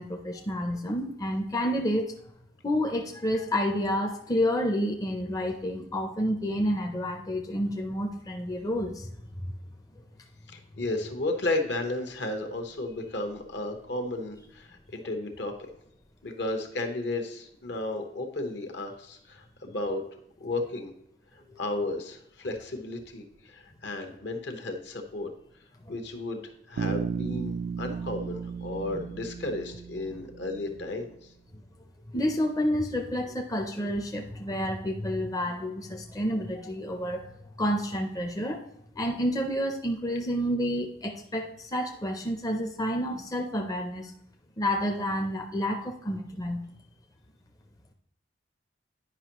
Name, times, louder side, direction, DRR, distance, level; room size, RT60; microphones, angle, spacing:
voice 1, 0.0-2.1 2.6-9.1 28.9-29.0 32.1-37.3 37.6-38.6 39.0-44.1 44.6-46.6, equal, 20° left, 3 dB, 0.5 m, -29 dB
voice 2, 10.5-15.7 16.2-20.0 20.4-20.9 21.6-25.3 25.9-26.4 26.7-31.1, left 2 dB, 65° left, 4 dB, 1.1 m, -33 dB
Bass guitar, 26.8-30.8, right 6 dB, 80° right, 0.3 m, -34 dB
9.7 x 5.3 x 3.0 m, 0.76 s
head